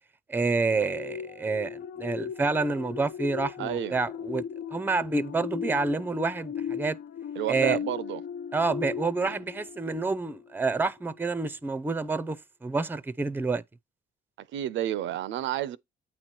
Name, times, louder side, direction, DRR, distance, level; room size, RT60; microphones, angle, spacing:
voice 1, 0.3-4.4 4.7-7.0 7.5-7.8 8.5-13.6, right 3 dB, 10° right, 0.5 m, -28 dB
sound 1, 0.7-10.6 11.0-11.2, left 8 dB, 70° left, 0.5 m, -37 dB
voice 2, 3.6-4.0 7.4-8.2 9.2-9.3 14.5-15.8, right 12 dB, 75° right, 0.4 m, -30 dB
8.7 x 3.0 x 4.4 m
cardioid pair, 90°, 20 cm